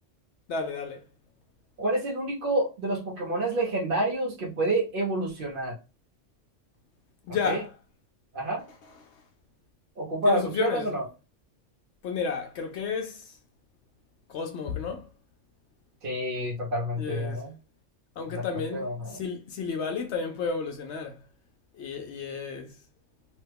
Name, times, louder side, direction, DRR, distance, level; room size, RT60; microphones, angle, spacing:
voice 1, 0.5-1.0 7.3-7.7 10.3-10.9 12.0-13.3 14.3-15.1 17.0-17.5 18.2-21.2 21.8-22.7, left 5 dB, 70° left, 0.8 m, -32 dB
voice 2, 1.8-5.8 7.4-7.6 8.3-8.6 10.0-11.0 16.0-17.5 18.2-19.2, right 1 dB, 50° right, 0.9 m, -28 dB
3.0 x 2.2 x 3.3 m
omnidirectional pair, 1.3 m